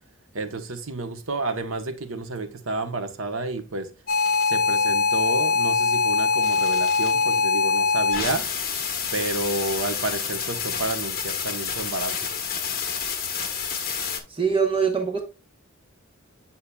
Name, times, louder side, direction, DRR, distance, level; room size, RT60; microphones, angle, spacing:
voice 1, 0.3-3.9 4.4-8.5 9.1-12.2, right 2 dB, 80° right, 1.0 m, -30 dB
sound 1, 4.1-14.2, left 5 dB, 45° left, 1.2 m, -24 dB
voice 2, 14.3-15.2, right 6 dB, 25° right, 1.0 m, -23 dB
8.5 x 5.5 x 2.3 m
head